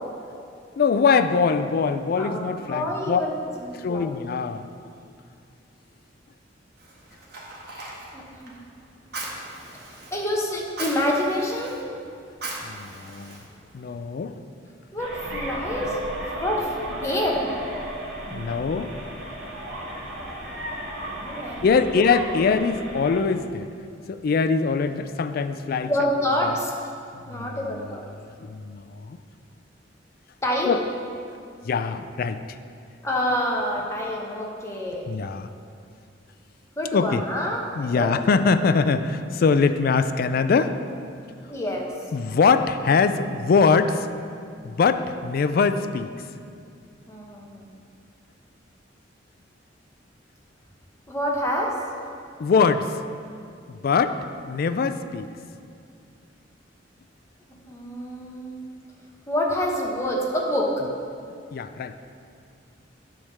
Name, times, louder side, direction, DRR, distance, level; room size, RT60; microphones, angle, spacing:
voice 1, 0.8-3.2 3.8-4.7 12.6-13.4 13.7-14.5 18.3-18.9 21.6-23.7 24.1-25.9 27.3-28.0 28.4-29.2 30.7-30.8 31.6-32.4 35.1-35.5 36.9-37.2 37.8-40.7 42.1-44.1 44.6-46.1 52.4-52.9 53.7-55.3 61.5-61.9, left 5 dB, 55° left, 10 dB, 0.3 m, -22 dB
voice 2, 2.2-4.1 8.1-8.5 10.1-11.8 14.9-16.1 16.4-17.5 21.1-21.6 25.8-26.7 27.3-28.0 30.4-30.8 33.0-35.1 36.8-38.1 41.5-41.9 47.1-47.7 51.1-51.8 57.7-58.6 59.3-60.8, left 1 dB, 15° left, -2 dB, 1.1 m, -27 dB
Fire, 6.8-14.0, right 2 dB, 60° right, 1.4 m, -39 dB
sound 1, 15.0-23.2, right 1 dB, 85° right, 1.3 m, -35 dB
10.0 x 3.5 x 6.5 m, 2.4 s
head